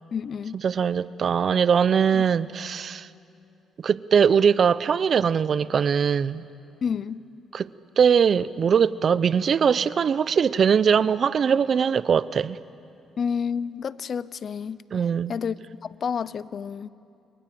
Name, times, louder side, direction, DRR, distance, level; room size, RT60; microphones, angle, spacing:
voice 1, 0.1-0.6 2.1-2.2 6.8-7.2 13.2-14.8 15.3-15.6 15.8-16.9, left 6 dB, 50° left, 0.6 m, -29 dB
voice 2, 0.6-3.1 3.8-6.4 7.5-7.7 8.0-12.6 14.9-15.3, right 7 dB, 50° right, 0.7 m, -21 dB
29.5 x 22.5 x 7.7 m
cardioid pair, 90°, 0 cm